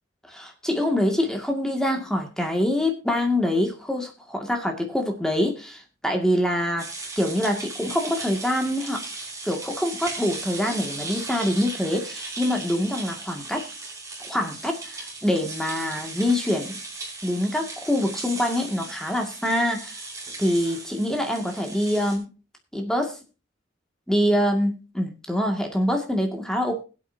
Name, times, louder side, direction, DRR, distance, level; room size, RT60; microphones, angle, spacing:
voice 1, 0.3-6.9 7.2-9.0 9.4-13.6 14.2-16.8 17.2-20.0 20.4-22.3 22.7-23.2 24.1-26.8, left 1 dB, 5° left, 3 dB, 2.1 m, -25 dB
sound 1, 6.8-22.2, right 3 dB, 15° right, 4.1 m, -37 dB
21.0 x 8.6 x 2.8 m, 0.32 s
head